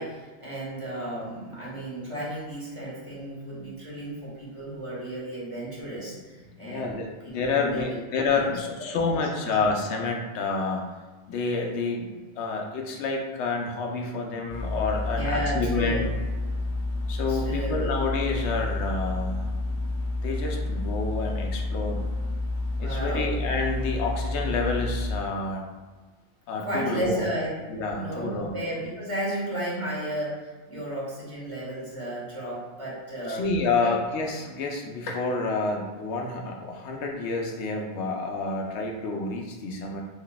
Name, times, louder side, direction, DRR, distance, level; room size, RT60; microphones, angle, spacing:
voice 1, 0.0-8.0 8.3-8.7 9.1-9.5 15.1-16.1 17.3-18.0 22.8-23.3 26.6-33.4 33.8-33.9, right 1 dB, 30° right, -7 dB, 1.2 m, -33 dB
voice 2, 6.6-10.9 11.3-16.1 17.1-19.4 20.2-22.1 22.8-25.6 26.5-27.3 27.7-28.5 33.3-40.0, left 3 dB, 85° left, 1 dB, 0.9 m, -29 dB
sound 1, 14.5-25.1, left 2 dB, 60° left, 0.4 m, -29 dB
3.9 x 3.3 x 2.2 m, 1.3 s
omnidirectional pair, 1.1 m